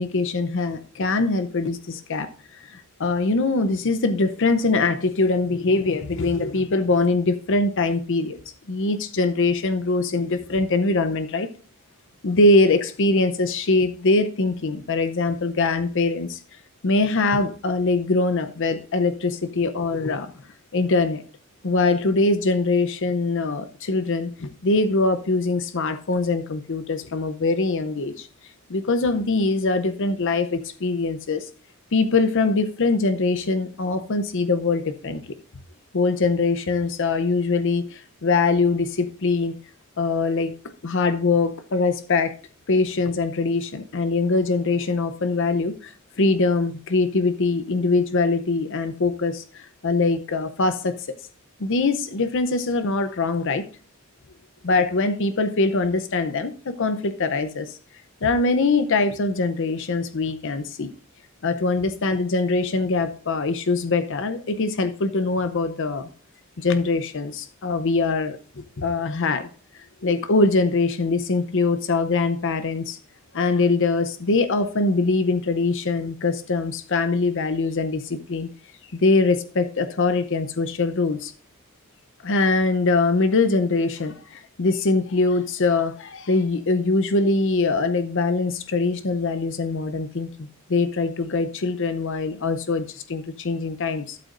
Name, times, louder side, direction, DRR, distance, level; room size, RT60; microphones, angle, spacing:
voice 1, 0.0-8.4 8.7-11.5 12.2-16.4 16.8-20.3 20.7-21.2 21.6-28.3 28.7-31.5 31.9-35.2 35.9-39.5 40.0-40.5 40.8-42.3 42.7-51.2 51.6-53.7 54.6-57.8 58.2-60.9 61.4-66.1 66.6-69.5 70.0-73.0 73.3-78.5 78.9-81.3 82.2-94.2, left 3 dB, 60° left, 0.7 m, -23 dB
12.5 x 8.2 x 2.5 m
head